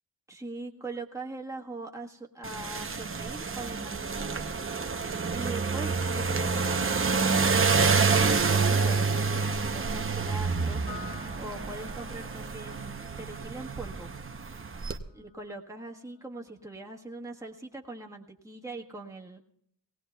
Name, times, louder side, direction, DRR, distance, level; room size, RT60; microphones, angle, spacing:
voice 1, 0.3-4.5 5.3-7.5 7.9-14.1 15.1-19.4, right 2 dB, 10° right, 0 dB, 1.4 m, -42 dB
sound 1, 2.4-15.0, right 4 dB, 35° right, 0.7 m, -28 dB
Piano, 10.9-17.6, left 3 dB, 85° left, 3.5 m, -51 dB
19.0 x 18.0 x 2.3 m, 0.74 s
wide cardioid pair, 95°, 39 cm